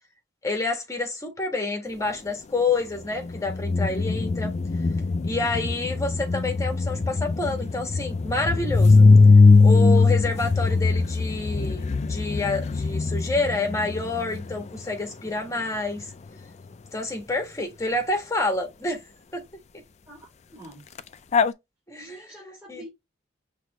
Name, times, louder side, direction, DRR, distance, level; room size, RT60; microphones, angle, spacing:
voice 1, 0.4-4.5 5.2-9.1 9.6-16.0 16.9-19.0 19.3-19.4 21.9-22.1 22.7-22.8, left 2 dB, 15° left, 1.4 m, -28 dB
sound 1, 3.2-14.8 21.0-21.1 21.3-21.5, left 3 dB, 40° left, 0.4 m, -20 dB
voice 2, 9.9-10.9 20.1-20.9 21.9-22.9, right 1 dB, 10° right, 3.0 m, -46 dB
5.9 x 3.1 x 2.9 m
head